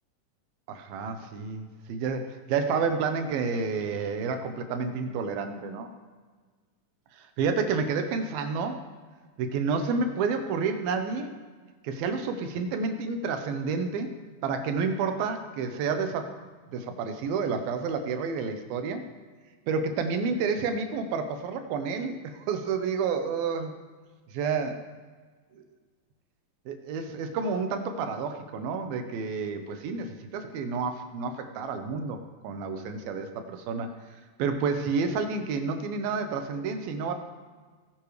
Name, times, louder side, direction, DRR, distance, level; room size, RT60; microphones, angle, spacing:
voice 1, 0.7-5.9 7.1-8.8 9.4-11.3 11.8-14.1 14.4-16.3 16.7-19.0 19.7-23.7 24.3-24.8 26.7-32.2 32.4-33.9 34.4-37.1, right 5 dB, 80° right, 7 dB, 2.7 m, -30 dB
18.5 x 9.9 x 3.3 m, 1.4 s
omnidirectional pair, 4.2 m